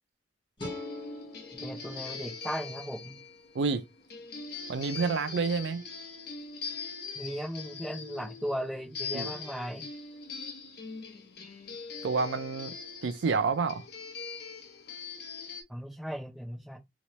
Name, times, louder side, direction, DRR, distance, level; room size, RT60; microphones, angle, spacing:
sound 1, 0.6-15.6, left 5 dB, 60° left, 0.9 m, -42 dB
sound 2, 0.6-3.8, left 3 dB, 25° left, 1.4 m, -45 dB
voice 1, 1.5-3.2 7.1-9.9 15.7-16.8, equal, ahead, 0.6 m, -37 dB
voice 2, 4.7-5.8 9.1-9.3 12.0-12.7 13.0-13.8, right 4 dB, 80° right, 0.4 m, -29 dB
3.0 x 3.0 x 3.0 m
head